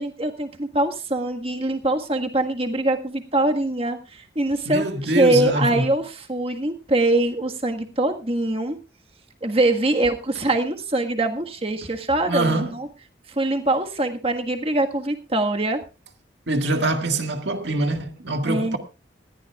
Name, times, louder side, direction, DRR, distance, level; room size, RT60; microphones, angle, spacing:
voice 1, 0.0-8.8 9.4-12.9 13.3-15.8 18.5-18.8, right 2 dB, 30° right, 1.6 m, -23 dB
voice 2, 4.7-5.9 12.3-12.8 16.5-18.8, right 2 dB, 70° right, 1.9 m, -24 dB
19.5 x 14.5 x 2.4 m
head